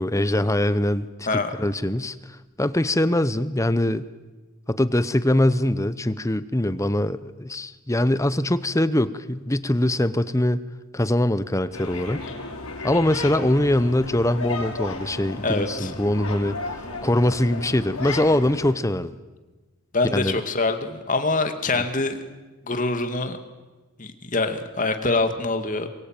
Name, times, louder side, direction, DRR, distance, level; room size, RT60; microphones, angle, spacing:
voice 1, 0.0-2.1 2.6-4.1 4.7-10.6 10.9-12.3 12.8-16.6 17.0-19.2 20.1-20.4 21.7-21.8, left 1 dB, 15° left, 14 dB, 0.8 m, -22 dB
sound 1, 11.7-18.7, left 3 dB, 80° left, 6.4 m, -34 dB
voice 2, 15.4-15.9 19.9-22.2 22.7-23.4 24.0-25.9, left 3 dB, 35° left, 7 dB, 2.2 m, -24 dB
27.5 x 24.0 x 9.0 m, 1.2 s
head